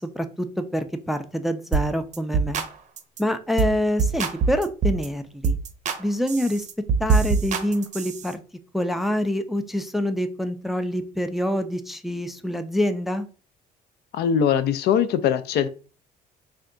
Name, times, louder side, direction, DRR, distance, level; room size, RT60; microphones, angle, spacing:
voice 1, 0.0-2.6 3.2-5.6 6.0-6.7 7.0-8.4 8.7-13.3, equal, ahead, 9 dB, 0.3 m, -26 dB
sound 1, 1.7-1.9 2.1-2.7 3.0-3.2 3.6-3.7 4.0-5.1 5.4-6.0 6.3-8.3, right 5 dB, 45° right, 0.6 m, -24 dB
voice 2, 14.1-15.7, left 8 dB, 70° left, 13 dB, 0.4 m, -21 dB
3.4 x 2.2 x 3.7 m, 0.37 s
cardioid pair, 110°, 17 cm